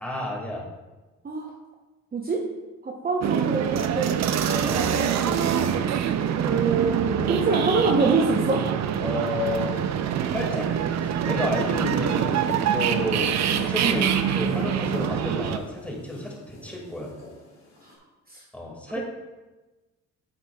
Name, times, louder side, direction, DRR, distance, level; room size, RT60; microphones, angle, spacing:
voice 1, 0.0-0.7 4.6-4.8 9.0-9.7 10.3-10.7 11.0-17.1 18.5-19.0, left 1 dB, 5° left, -2 dB, 2.1 m, -31 dB
voice 2, 2.1-2.4 2.8-5.4 6.4-8.7 13.8-14.1 17.8-18.0 18.3-18.4, right 4 dB, 30° right, 0 dB, 0.8 m, -26 dB
sound 1, 3.2-15.6, right 8 dB, 65° right, 0.6 m, -25 dB
sound 2, 10.4-17.9, left 1 dB, 55° left, 2.3 m, -43 dB
8.9 x 7.3 x 2.3 m, 1.2 s
cardioid pair, 90°, 30 cm